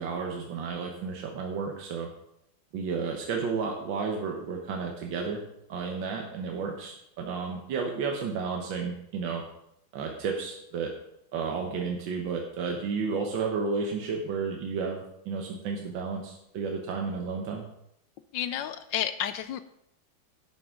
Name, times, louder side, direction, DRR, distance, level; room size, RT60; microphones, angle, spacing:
voice 1, 0.0-2.1 2.7-5.4 5.7-9.4 9.9-10.9 11.3-17.6, right 5 dB, 75° right, 1 dB, 1.7 m, -32 dB
voice 2, 18.3-19.6, left 10 dB, 75° left, 12 dB, 1.2 m, -31 dB
11.0 x 8.6 x 3.6 m, 0.78 s
omnidirectional pair, 2.1 m